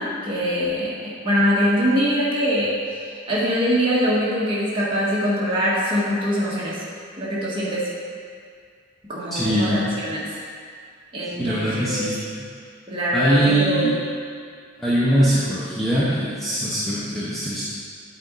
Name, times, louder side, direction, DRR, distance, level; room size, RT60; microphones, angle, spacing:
voice 1, 0.0-2.7 3.0-6.8 7.2-7.9 9.1-10.3 11.1-12.0 12.9-13.9, equal, 25° right, -8 dB, 1.4 m, -23 dB
voice 2, 9.3-9.9 11.3-12.4 13.1-13.9 14.8-17.6, right 1 dB, ahead, -10 dB, 0.7 m, -22 dB
7.9 x 4.2 x 3.9 m, 2.1 s
head